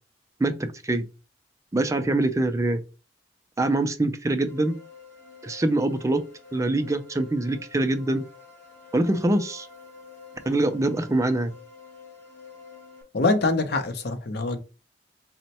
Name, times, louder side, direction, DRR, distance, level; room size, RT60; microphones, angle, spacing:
voice 1, 0.4-1.1 1.7-2.8 3.6-4.8 5.4-6.2 6.5-8.2 8.9-9.7 10.5-11.5, right 2 dB, 20° right, 0.4 m, -24 dB
sound 1, 4.5-13.0, left 5 dB, 15° left, 1.7 m, -48 dB
voice 2, 13.1-14.6, left 3 dB, 65° left, 0.7 m, -24 dB
4.2 x 2.1 x 4.1 m
head